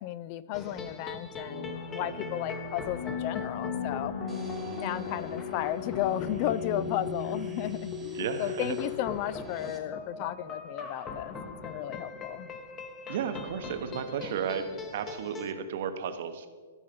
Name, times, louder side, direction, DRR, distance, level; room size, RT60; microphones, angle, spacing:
voice 1, 0.0-4.1 4.8-12.5, left 13 dB, 35° left, 17 dB, 0.3 m, -34 dB
sound 1, 0.5-15.5, left 5 dB, 20° left, 1.0 m, -40 dB
sound 2, 1.4-8.7, left 4 dB, 65° left, 1.6 m, -38 dB
sound 3, 4.3-9.8, right 3 dB, 10° right, 1.3 m, -54 dB
voice 2, 8.1-8.8 13.1-16.5, right 7 dB, 55° right, 9 dB, 0.9 m, -34 dB
14.0 x 5.5 x 5.2 m, 1.5 s
hypercardioid pair, 150°, 0 cm